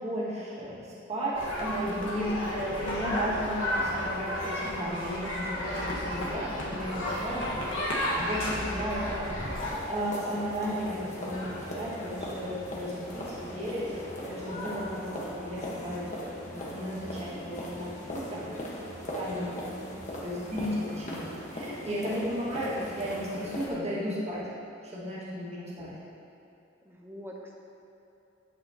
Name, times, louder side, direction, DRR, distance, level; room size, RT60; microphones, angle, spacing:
voice 1, 0.0-9.4 9.8-16.1 16.5-18.5 19.1-24.5 24.8-25.9, equal, 35° right, -8 dB, 2.1 m, -34 dB
sound 1, 1.3-9.7, left 1 dB, 90° left, 1.6 m, -32 dB
voice 2, 2.1-2.6 18.8-19.7 20.0-20.5 25.6-26.1 26.8-27.5, equal, 15° right, -1 dB, 1.0 m, -49 dB
sound 2, 9.5-23.7, equal, 40° left, 1.4 m, -39 dB
sound 3, 10.1-15.2, left 1 dB, 20° left, 1.6 m, -47 dB
10.0 x 8.7 x 3.0 m, 2.8 s
head